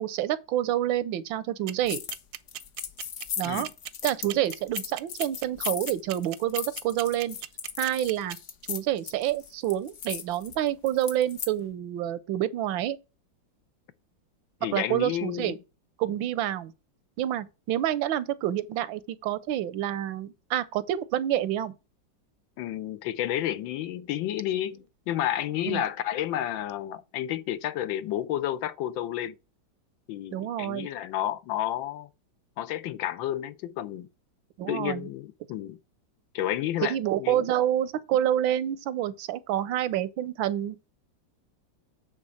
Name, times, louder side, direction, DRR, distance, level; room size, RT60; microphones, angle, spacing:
voice 1, 0.0-2.0 3.4-3.7 4.0-7.4 7.8-8.4 8.7-13.0 14.7-15.6 16.0-16.7 17.2-21.7 25.7-25.8 30.3-30.9 34.6-35.1 36.8-40.9, right 12 dB, 90° right, 1.4 m, -28 dB
sound 1, 1.7-8.3, right 13 dB, 70° right, 1.0 m, -36 dB
sound 2, 1.9-2.2 2.5-11.5, left 8 dB, 60° left, 0.8 m, -37 dB
voice 2, 14.6-15.6 22.6-29.3 30.1-32.1 32.6-34.1 34.7-35.8 36.3-37.4, left 12 dB, 85° left, 1.5 m, -31 dB
8.4 x 3.6 x 6.4 m
omnidirectional pair, 2.1 m